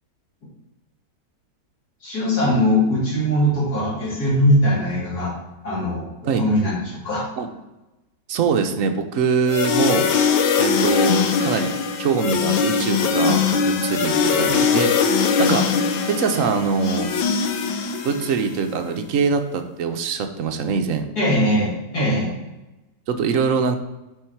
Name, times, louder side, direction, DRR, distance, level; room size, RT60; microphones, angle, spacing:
voice 1, 2.0-5.3 5.6-7.2 21.1-22.3, equal, 55° left, -5 dB, 3.2 m, -21 dB
voice 2, 8.3-10.1 10.6-11.7 12.0-14.9 15.4-15.6 16.1-17.1 18.0-21.1 23.1-23.8, right 5 dB, 65° right, 7 dB, 0.8 m, -23 dB
sound 1, 9.5-18.6, left 6 dB, 80° left, 1.5 m, -21 dB
8.1 x 4.7 x 4.5 m, 1.0 s
omnidirectional pair, 2.1 m